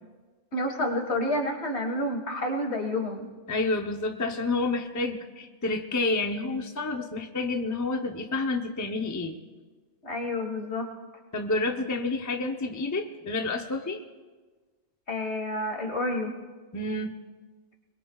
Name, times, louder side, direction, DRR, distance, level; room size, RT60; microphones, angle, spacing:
voice 1, 0.5-3.3 10.0-10.9 15.1-16.3, left 1 dB, 60° left, 3 dB, 2.1 m, -29 dB
voice 2, 3.5-9.4 11.3-14.0 16.7-17.2, left 3 dB, 20° left, 3 dB, 0.7 m, -29 dB
22.5 x 21.5 x 2.4 m, 1.3 s
omnidirectional pair, 1.3 m